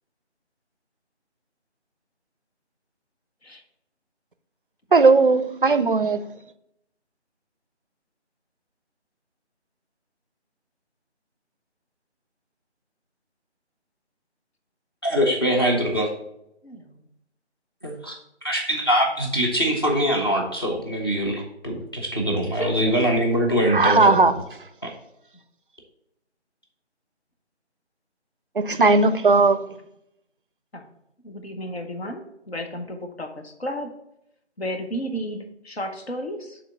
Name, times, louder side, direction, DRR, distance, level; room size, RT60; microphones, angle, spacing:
voice 1, 4.9-6.2 23.7-24.3 28.6-29.6, right 3 dB, 50° right, 0.5 m, -17 dB
voice 2, 15.0-16.1 17.8-18.2 18.4-24.3 24.8-24.9, equal, 20° left, 0.8 m, -23 dB
voice 3, 16.6-17.1 22.5-22.9 30.7-30.9 31.2-33.9 34.6-36.6, equal, 60° left, 1.2 m, -33 dB
5.9 x 3.7 x 5.8 m
figure-of-eight pair, 160°, 34 cm